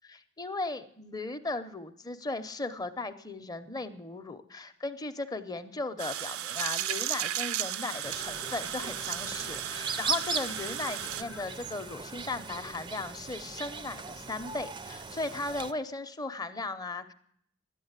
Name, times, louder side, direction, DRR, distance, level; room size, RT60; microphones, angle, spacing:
voice 1, 0.0-17.1, left 3 dB, 15° left, 9 dB, 0.7 m, -37 dB
sound 1, 6.0-11.2, right 12 dB, 70° right, 0.5 m, -35 dB
sound 2, 6.5-11.5, left 8 dB, 70° left, 0.6 m, -49 dB
sound 3, 8.0-15.7, right 4 dB, 20° right, 0.5 m, -39 dB
12.5 x 10.5 x 8.1 m, 0.70 s
head